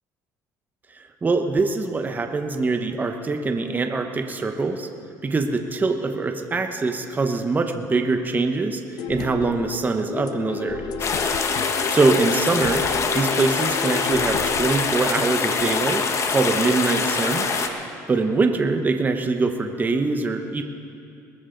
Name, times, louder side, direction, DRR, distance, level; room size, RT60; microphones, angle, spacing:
voice 1, 0.9-4.9 5.2-11.1 11.9-12.8 13.1-16.0 16.3-17.5 18.1-20.6, right 3 dB, 25° right, 6 dB, 1.0 m, -23 dB
sound 1, 9.0-14.7, left 7 dB, 70° left, 0.7 m, -32 dB
sound 2, 11.0-17.7, left 5 dB, 40° left, 1.3 m, -24 dB
21.5 x 13.5 x 3.9 m, 2.6 s
cardioid pair, 100°, 7 cm